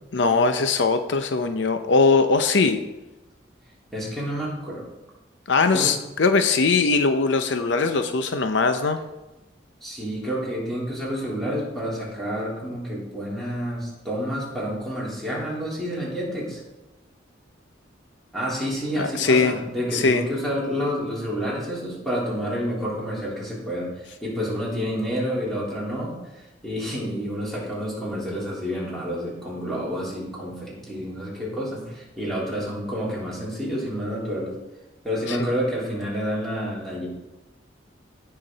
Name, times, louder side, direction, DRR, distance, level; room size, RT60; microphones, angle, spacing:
voice 1, 0.1-2.8 5.5-9.0 19.0-19.5 19.9-20.2 35.3-35.4, left 4 dB, 70° left, 8 dB, 0.6 m, -20 dB
voice 2, 3.9-4.9 5.7-5.9 9.8-16.6 18.3-26.1 26.6-34.6 35.0-37.1, equal, ahead, -7 dB, 3.5 m, -29 dB
16.0 x 5.9 x 4.0 m, 1.0 s
head